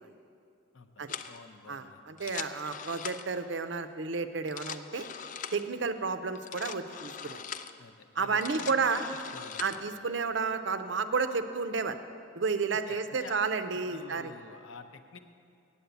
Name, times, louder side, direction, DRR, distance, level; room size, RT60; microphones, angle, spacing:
voice 1, 0.7-2.0 7.8-9.0 9.3-9.8 12.9-13.4 13.9-15.2, left 4 dB, 75° left, 7 dB, 0.7 m, -49 dB
sound 1, 1.1-1.4 2.1-3.4 4.3-5.7 6.4-7.8 8.2-9.8, left 8 dB, 40° left, 0.3 m, -41 dB
voice 2, 1.7-5.1 5.5-7.4 8.2-9.0 9.6-12.0 12.3-14.3, right 4 dB, 60° right, 10 dB, 0.6 m, -31 dB
8.5 x 8.2 x 8.0 m, 2.5 s
head